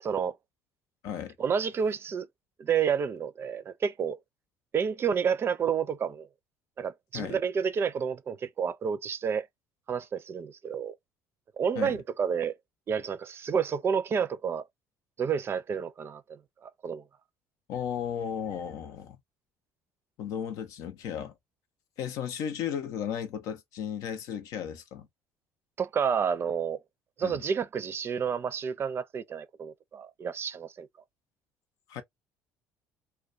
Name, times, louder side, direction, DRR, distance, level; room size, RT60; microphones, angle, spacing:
voice 1, 0.0-0.3 1.4-2.3 2.6-4.2 4.7-6.3 6.8-9.5 9.9-10.9 11.6-12.5 12.9-14.6 15.2-17.0 25.8-26.8 27.2-30.9, right 7 dB, 40° right, 0.5 m, -30 dB
voice 2, 1.0-1.4 7.1-7.4 11.8-12.0 17.7-19.2 20.2-21.3 22.0-25.1 27.2-27.4 31.9-32.0, left 8 dB, 70° left, 0.6 m, -35 dB
2.3 x 2.2 x 2.5 m
supercardioid pair, 70°, 6 cm